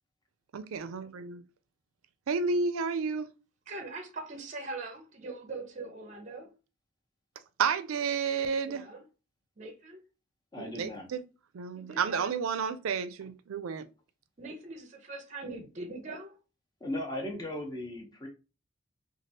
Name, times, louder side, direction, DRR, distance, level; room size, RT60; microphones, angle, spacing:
voice 1, 0.5-1.4 2.3-3.3 7.6-8.8 10.6-11.2 11.5-13.8, right 5 dB, 90° right, 0.4 m, -31 dB
voice 2, 3.7-6.5 8.7-9.0 9.6-10.0 11.8-12.6 14.4-16.4, right 2 dB, 35° right, 0.5 m, -42 dB
voice 3, 10.5-11.1 13.2-13.3 16.8-18.3, left 1 dB, 20° left, 0.7 m, -37 dB
3.2 x 2.4 x 2.7 m
head